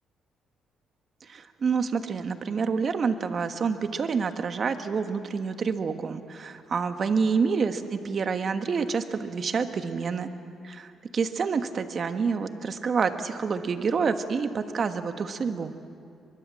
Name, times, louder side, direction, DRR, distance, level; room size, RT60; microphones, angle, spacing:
voice 1, 1.2-10.3 10.6-15.7, right 5 dB, 50° right, 8 dB, 1.4 m, -28 dB
23.5 x 22.0 x 7.6 m, 2.4 s
cardioid pair, 90°, 0 cm